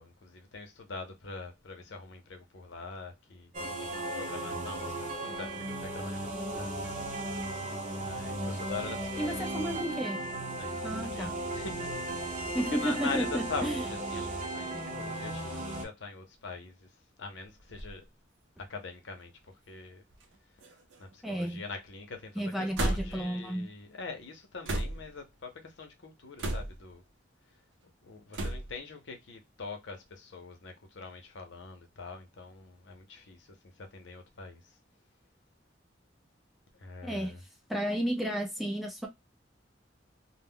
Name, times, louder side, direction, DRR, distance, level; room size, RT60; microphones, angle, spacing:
voice 1, 0.0-3.5 4.1-6.7 7.9-9.7 10.6-11.9 12.2-16.9 17.2-18.0 18.6-19.3 19.7-20.0 21.0-27.0 28.0-33.5 33.8-34.6 36.7-37.4, left 4 dB, 70° left, 0.7 m, -43 dB
sound 1, 3.5-15.8, right 1 dB, 40° right, 0.7 m, -36 dB
voice 2, 9.2-10.2 10.8-11.3 12.5-13.8 21.2-21.6 22.4-23.7 37.0-37.3 37.7-39.1, right 1 dB, ahead, 0.5 m, -32 dB
sound 2, 17.5-18.0 18.8-18.9 20.1-20.4 20.6-21.2 22.7-23.3 24.7-25.2 26.4-26.9 28.3-28.8, right 1 dB, 75° right, 0.6 m, -34 dB
2.2 x 2.1 x 3.5 m
head